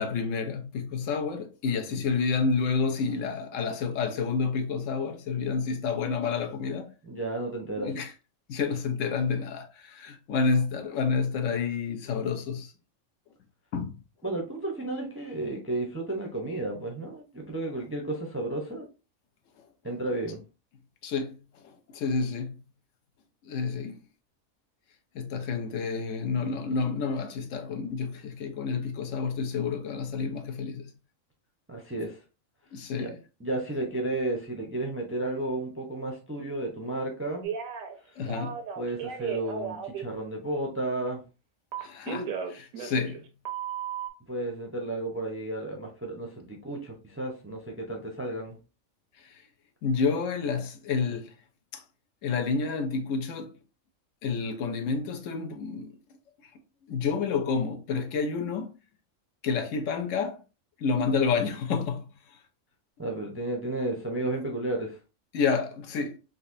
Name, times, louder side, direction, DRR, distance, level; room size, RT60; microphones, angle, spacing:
voice 1, 0.0-6.9 7.8-8.1 8.5-12.7 13.7-14.0 19.6-19.7 21.0-22.5 23.4-24.0 25.1-30.9 32.7-33.2 38.2-38.6 41.8-43.2 49.1-49.5 49.8-51.4 51.7-51.8 52.2-53.6 54.2-56.0 56.4-56.5 56.8-58.7 59.4-60.4 60.8-62.4 65.3-66.2, left 5 dB, 75° left, 0.9 m, -29 dB
voice 2, 7.0-7.9 14.2-18.9 19.8-20.4 31.7-32.2 33.0-33.1 33.4-37.5 38.8-41.2 44.3-48.6 63.0-65.0, right 2 dB, 20° right, 0.4 m, -32 dB
Telephone, 37.4-37.9 38.3-40.0 41.7-43.2 43.5-44.1, right 7 dB, 90° right, 1.1 m, -35 dB
4.0 x 2.5 x 2.5 m
omnidirectional pair, 1.4 m